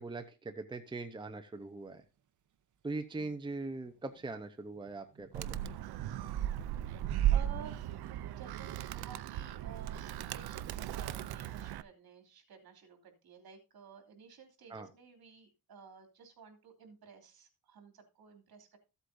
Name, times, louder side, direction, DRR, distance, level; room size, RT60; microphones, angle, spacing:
voice 1, 0.0-2.0 2.8-5.6 14.7-14.9, right 3 dB, 15° right, 7 dB, 0.8 m, -41 dB
sound 1, 3.5-9.0, right 8 dB, 55° right, 0.9 m, -52 dB
Animal, 5.3-11.8, right 11 dB, 90° right, 0.6 m, -36 dB
voice 2, 7.2-18.8, right 6 dB, 70° right, 4 dB, 2.9 m, -54 dB
14.5 x 8.2 x 2.7 m, 0.30 s
wide cardioid pair, 135°, 37 cm